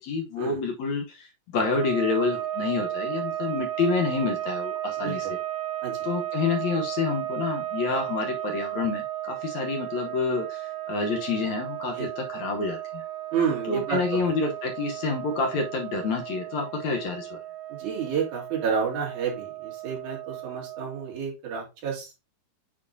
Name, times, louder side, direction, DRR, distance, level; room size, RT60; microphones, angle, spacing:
voice 1, 0.0-5.4 6.0-13.0 13.7-17.4, left 4 dB, 65° left, 3 dB, 2.1 m, -28 dB
sound 1, 1.6-21.2, right 13 dB, 90° right, 3.0 m, -34 dB
voice 2, 13.3-14.3 17.7-22.1, right 6 dB, 65° right, -1 dB, 3.6 m, -30 dB
8.3 x 4.5 x 2.7 m, 0.26 s
omnidirectional pair, 3.8 m